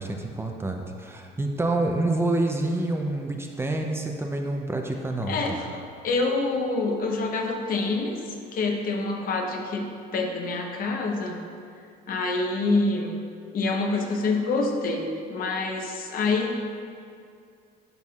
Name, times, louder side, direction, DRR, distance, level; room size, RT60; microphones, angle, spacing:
voice 1, 0.0-5.6, right 2 dB, 15° right, 2 dB, 0.5 m, -27 dB
voice 2, 5.3-11.4 12.1-13.2 13.5-16.6, left 3 dB, 60° left, 2 dB, 0.9 m, -27 dB
10.5 x 5.7 x 2.4 m, 2.4 s
cardioid pair, 110°, 17 cm